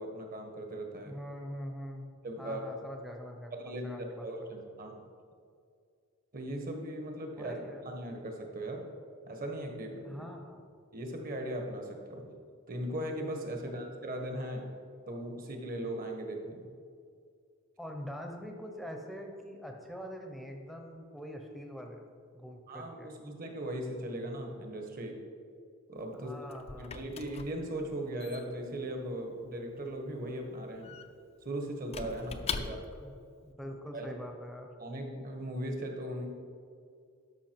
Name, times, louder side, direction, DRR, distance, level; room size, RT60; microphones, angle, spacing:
voice 1, 0.0-1.2 2.2-2.9 3.5-4.9 6.3-7.5 7.8-8.8 9.2-10.2 10.9-12.3 12.7-14.7 15.1-16.7 22.7-25.2 25.9-26.3 26.8-30.9 31.4-32.8 33.9-34.1 34.8-36.3, right 1 dB, 40° right, 3 dB, 1.3 m, -38 dB
voice 2, 1.0-4.3 7.3-7.8 10.0-10.6 17.8-22.1 22.3-23.1 26.1-27.1 32.5-33.1 33.4-34.7, equal, ahead, 2 dB, 0.7 m, -44 dB
Squeak / Wood, 26.0-33.1, left 5 dB, 30° left, 0.4 m, -43 dB
12.5 x 5.7 x 4.6 m, 2.3 s
head